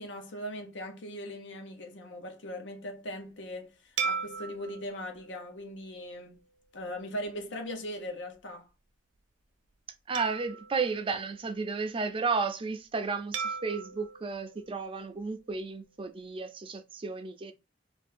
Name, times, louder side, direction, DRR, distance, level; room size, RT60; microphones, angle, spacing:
voice 1, 0.0-6.4 6.7-8.7, equal, 75° left, 0.8 m, -40 dB
sound 1, 4.0-6.6 7.2-7.4 10.1-11.9 13.3-15.6, right 6 dB, 90° right, 0.6 m, -39 dB
voice 2, 10.1-17.5, right 4 dB, 30° right, 0.4 m, -33 dB
2.7 x 2.6 x 4.1 m
head